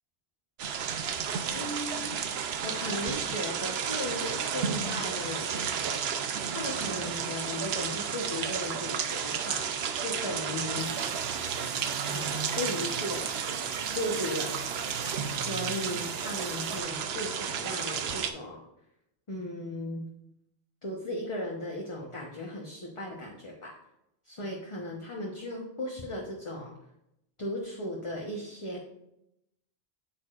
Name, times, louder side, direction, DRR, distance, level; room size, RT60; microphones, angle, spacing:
sound 1, 0.6-18.3, right 7 dB, 70° right, 0.9 m, -32 dB
voice 1, 1.5-2.1 2.6-5.7 6.5-9.7 10.0-10.9 12.1-13.3 13.9-14.5 15.3-18.6 19.3-20.1 20.8-23.7 24.2-26.7 27.4-28.8, left 1 dB, 30° left, -2 dB, 1.0 m, -36 dB
sound 2, 10.8-16.8, right 2 dB, 25° right, 1.1 m, -47 dB
8.6 x 7.0 x 2.4 m, 0.84 s
omnidirectional pair, 1.1 m